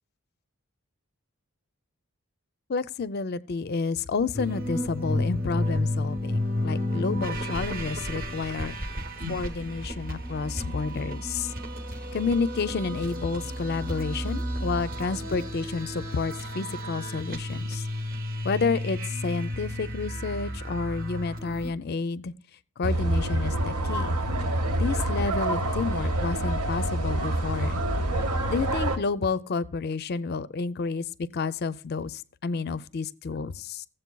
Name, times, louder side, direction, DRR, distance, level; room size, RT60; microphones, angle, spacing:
voice 1, 2.7-8.8 9.3-11.5 12.1-17.8 18.4-22.3 22.8-24.1 24.8-27.8 28.5-33.9, left 4 dB, 45° left, 0.4 m, -30 dB
sound 1, 4.3-21.7, left 1 dB, 40° right, 0.9 m, -32 dB
sound 2, 22.8-29.0, right 1 dB, 85° right, 1.0 m, -27 dB
16.0 x 7.7 x 2.2 m
head